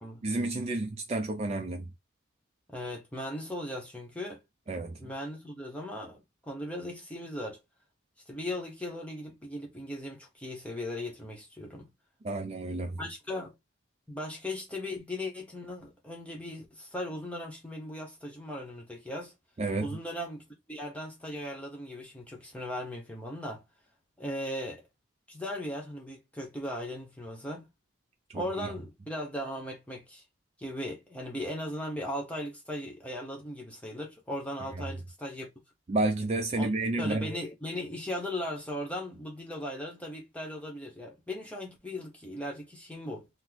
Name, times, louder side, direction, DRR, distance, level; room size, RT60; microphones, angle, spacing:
voice 1, 0.2-1.9 4.7-5.0 12.2-13.0 19.6-20.0 28.3-28.7 34.8-34.9 35.9-37.3, right 2 dB, 30° right, 0.3 m, -31 dB
voice 2, 2.7-4.4 5.0-7.6 8.3-11.9 13.0-13.5 14.1-19.3 19.8-23.6 24.2-24.8 25.3-27.7 28.3-30.2 30.6-35.5 36.5-36.7 37.0-43.3, left 1 dB, 5° left, 0.8 m, -38 dB
3.1 x 2.0 x 3.8 m
head